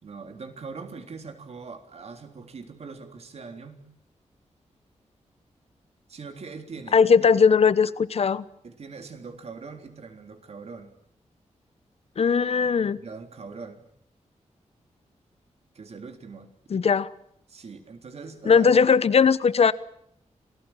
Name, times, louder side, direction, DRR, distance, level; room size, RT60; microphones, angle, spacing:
voice 1, 0.0-3.8 6.1-7.1 8.6-10.9 13.0-13.8 15.7-16.5 17.5-18.7, right 4 dB, 60° right, 3.6 m, -41 dB
voice 2, 6.9-8.4 12.2-13.0 16.7-17.1 18.5-19.7, left 6 dB, 55° left, 1.1 m, -19 dB
28.0 x 19.0 x 9.0 m
wide cardioid pair, 145°, 12 cm